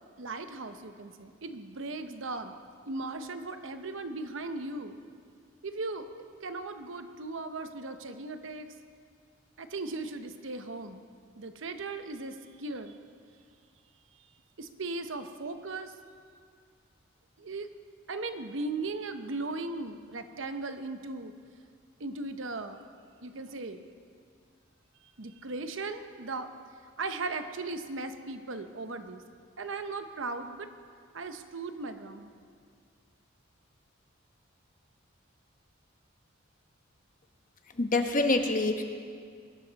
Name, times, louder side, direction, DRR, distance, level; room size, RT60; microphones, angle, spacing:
voice 1, 0.2-2.5 2.9-5.0 5.6-8.7 9.6-11.0 11.4-13.0 14.6-15.9 17.4-17.7 18.1-21.3 22.0-22.8 23.2-23.8 25.2-26.5 27.0-29.2 29.6-30.7 31.1-32.3, right 3 dB, 70° right, 8 dB, 0.9 m, -37 dB
voice 2, 37.7-38.8, left 2 dB, 40° left, 5 dB, 1.1 m, -26 dB
21.5 x 12.0 x 4.1 m, 2.1 s
head